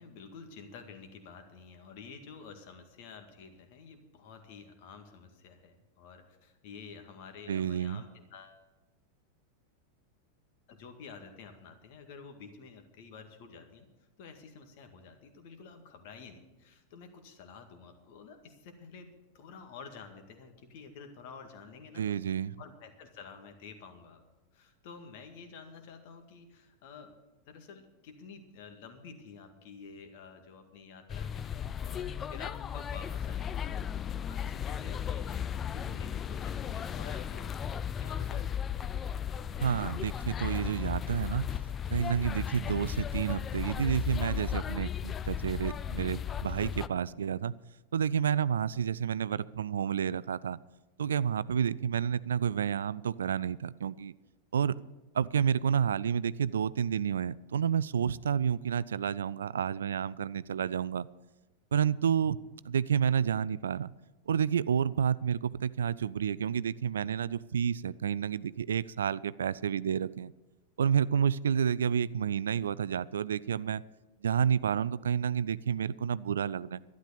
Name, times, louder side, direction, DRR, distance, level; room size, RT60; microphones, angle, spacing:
voice 1, 0.0-8.6 10.7-19.1 19.3-22.1 22.6-24.2 24.5-27.2 27.5-35.4 35.7-38.6, left 5 dB, 50° left, 6 dB, 1.9 m, -50 dB
voice 2, 7.5-8.0 22.0-22.5 39.6-41.5 41.9-47.5 47.9-50.6 51.0-54.1 54.5-54.8 55.1-61.1 61.7-62.4 62.6-63.9 64.3-70.3 70.8-73.8 74.2-76.8, right 8 dB, 65° right, 19 dB, 0.3 m, -30 dB
sound 1, 31.1-46.9, left 8 dB, 25° left, 0.4 m, -35 dB
12.0 x 11.5 x 6.8 m, 1.1 s
figure-of-eight pair, 90°, 0 cm